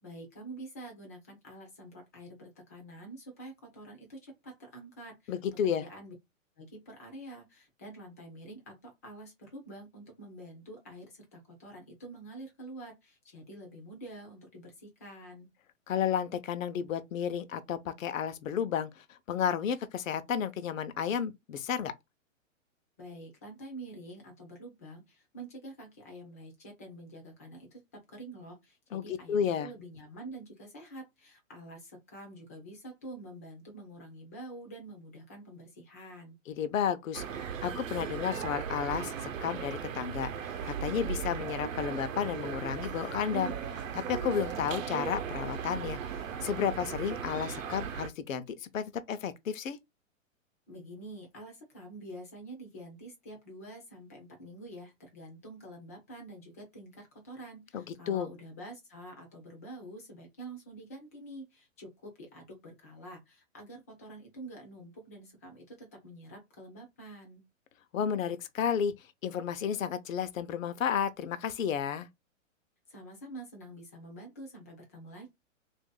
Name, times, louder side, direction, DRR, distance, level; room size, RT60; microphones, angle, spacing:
voice 1, 0.0-6.1 6.6-15.5 23.0-27.8 28.1-36.4 50.7-67.4 72.9-75.3, right 1 dB, 15° left, 0.4 m, -47 dB
voice 2, 5.3-5.8 15.9-21.9 28.9-29.7 36.5-49.8 57.7-58.3 67.9-72.1, left 8 dB, 80° left, 0.7 m, -32 dB
sound 1, 37.1-48.1, right 7 dB, 75° right, 0.8 m, -37 dB
3.0 x 2.6 x 3.7 m
hypercardioid pair, 155°, 39 cm